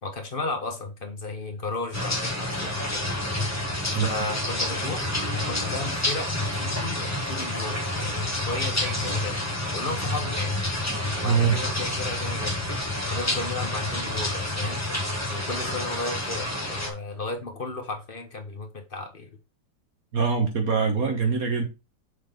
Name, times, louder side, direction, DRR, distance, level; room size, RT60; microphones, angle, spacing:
voice 1, 0.0-3.2 4.0-5.1 5.5-9.4 9.7-10.6 11.2-12.5 13.1-14.8 15.3-19.4, left 3 dB, 35° left, 1.2 m, -34 dB
sound 1, 1.9-16.9, left 1 dB, 10° left, 1.4 m, -29 dB
voice 2, 11.2-11.6 20.1-21.7, right 6 dB, 55° right, 1.5 m, -23 dB
6.5 x 4.1 x 5.2 m
omnidirectional pair, 2.0 m